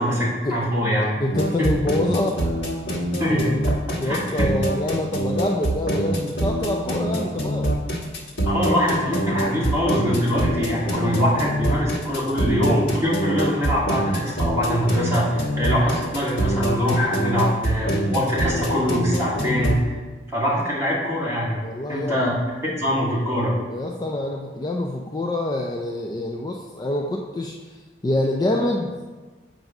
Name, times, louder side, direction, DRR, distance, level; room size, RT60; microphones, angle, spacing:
voice 1, 0.0-1.1 1.6-1.7 3.2-3.5 4.0-4.5 8.5-20.0 20.3-21.6 21.9-22.3 22.8-23.5, equal, 15° right, -8 dB, 1.9 m, -23 dB
voice 2, 1.2-2.5 4.0-7.7 19.3-19.6 21.6-22.3 23.7-27.8 28.0-29.1, left 1 dB, 20° left, 0 dB, 0.4 m, -26 dB
sound 1, 1.3-19.8, right 1 dB, 75° left, 1.3 m, -25 dB
7.8 x 2.6 x 5.8 m, 1.3 s
head